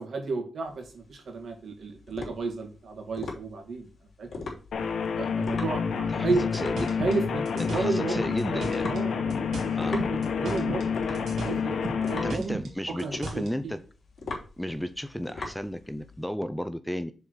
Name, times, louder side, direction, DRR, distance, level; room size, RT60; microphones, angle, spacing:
voice 1, 0.0-3.9 4.2-4.3 5.2-6.4 7.0-8.2 8.5-9.4 9.9-12.6 12.9-13.7, right 3 dB, 65° right, 3 dB, 2.3 m, -33 dB
sound 1, 0.7-16.2, left 3 dB, 60° left, 3.3 m, -41 dB
sound 2, 4.7-12.3, left 6 dB, 75° left, 1.1 m, -29 dB
sound 3, 6.3-9.0 9.3-10.9 11.1-13.5, right 3 dB, 85° right, 2.5 m, -36 dB
voice 2, 6.5-7.0 7.7-8.9 9.8-10.0 12.2-13.8 14.6-17.1, equal, ahead, 11 dB, 0.6 m, -33 dB
6.9 x 4.4 x 6.6 m, 0.36 s
wide cardioid pair, 110°, 0 cm